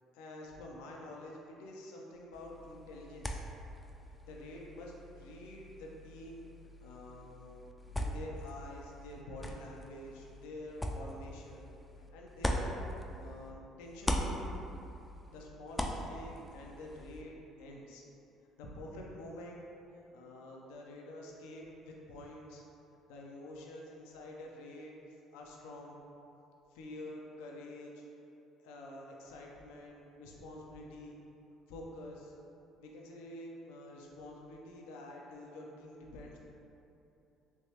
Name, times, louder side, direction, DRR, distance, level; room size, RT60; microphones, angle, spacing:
voice 1, 0.1-3.4 4.3-6.4 6.8-7.6 8.0-11.7 12.1-12.8 13.1-14.4 15.3-18.0 18.6-19.6 20.1-22.6 23.1-26.0 26.7-28.0 28.6-31.2 31.7-32.3 32.8-36.4, left 1 dB, 80° left, -2 dB, 0.5 m, -48 dB
sound 1, 2.3-13.5 13.8-17.2, equal, 10° left, 0.3 m, -41 dB
3.3 x 3.1 x 2.8 m, 2.8 s
supercardioid pair, 70°, 0 cm